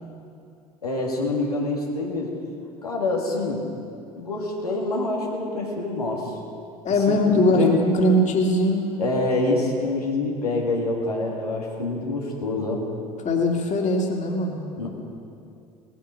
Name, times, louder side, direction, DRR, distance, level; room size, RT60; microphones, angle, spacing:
voice 1, 0.8-2.3 2.8-3.6 4.2-6.3 7.1-7.8 9.0-12.8 14.8-14.9, left 2 dB, 90° left, -2 dB, 2.0 m, -26 dB
voice 2, 6.8-8.9 13.2-14.6, left 1 dB, 40° left, 1 dB, 2.5 m, -21 dB
18.5 x 10.0 x 6.4 m, 2.5 s
figure-of-eight pair, 65°, 19 cm